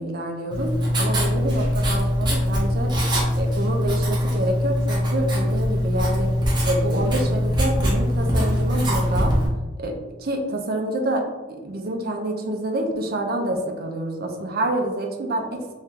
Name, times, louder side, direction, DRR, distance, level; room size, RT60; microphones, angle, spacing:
voice 1, 0.0-2.9 3.4-6.3 6.6-9.3 9.8-9.9 10.2-11.2 11.5-15.7, right 1 dB, 55° right, 3 dB, 0.6 m, -27 dB
Writing, 0.5-9.5, equal, 25° right, 0.9 m, -22 dB
3.7 x 3.1 x 2.8 m, 1.2 s
head